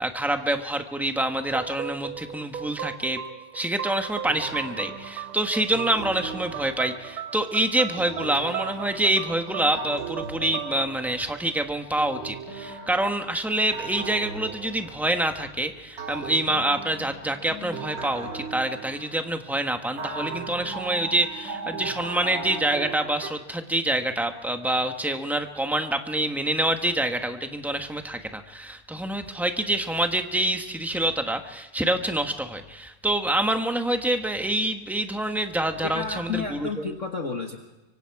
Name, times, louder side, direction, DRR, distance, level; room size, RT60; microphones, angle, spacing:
voice 1, 0.0-3.2 3.5-36.9, right 1 dB, ahead, 6 dB, 0.8 m, -26 dB
sound 1, 1.4-12.1, right 9 dB, 75° right, 1.8 m, -37 dB
sound 2, 4.3-7.4 8.0-11.5 12.0-15.5 16.0-19.5 20.0-23.3, right 4 dB, 60° right, 3.0 m, -38 dB
voice 2, 35.8-37.6, left 5 dB, 40° left, 3 dB, 1.6 m, -31 dB
25.0 x 24.5 x 4.8 m, 1.0 s
omnidirectional pair, 2.3 m